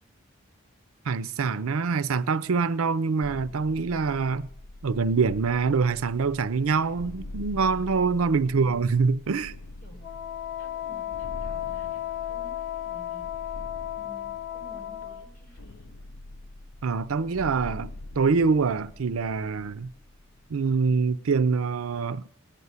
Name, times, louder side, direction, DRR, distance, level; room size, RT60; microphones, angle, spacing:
voice 1, 1.1-4.5 4.8-9.5 16.8-17.9 18.1-19.9 20.5-22.2, right 4 dB, 90° right, 0.6 m, -25 dB
sound 1, 3.2-20.9, left 2 dB, 90° left, 0.6 m, -44 dB
voice 2, 8.3-8.7 9.8-10.0 10.6-12.0 12.3-13.2 13.9-15.9, equal, 40° left, 4.9 m, -52 dB
Wind instrument woodwind instrument, 10.0-15.3, left 12 dB, 55° left, 1.7 m, -34 dB
18.5 x 6.9 x 9.6 m
head